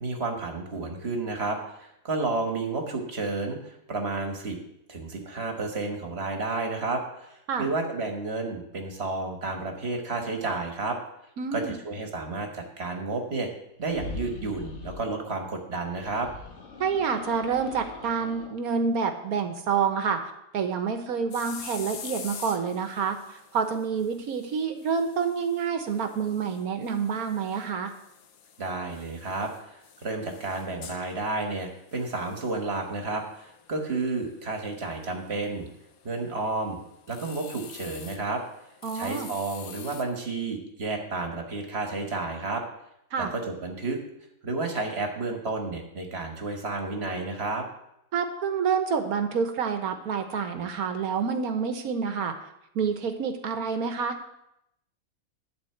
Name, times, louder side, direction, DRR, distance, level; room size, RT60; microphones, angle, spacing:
voice 1, 0.0-4.6 4.9-11.0 11.5-13.5 13.8-16.3 28.6-35.7 36.0-36.8 37.1-38.4 38.9-42.6 43.2-44.0 44.4-47.6, right 3 dB, 45° right, 3 dB, 1.6 m, -31 dB
voice 2, 11.4-11.8 16.8-20.2 20.5-27.9 38.8-39.3 43.1-43.3 48.1-52.4 52.7-54.4, right 6 dB, 85° right, 6 dB, 1.5 m, -28 dB
sound 1, 13.8-15.1 15.9-18.6, left 3 dB, 55° left, 1.4 m, -41 dB
sound 2, 21.3-40.0, left 7 dB, 85° left, 1.3 m, -47 dB
11.5 x 4.1 x 7.7 m, 0.81 s
omnidirectional pair, 1.5 m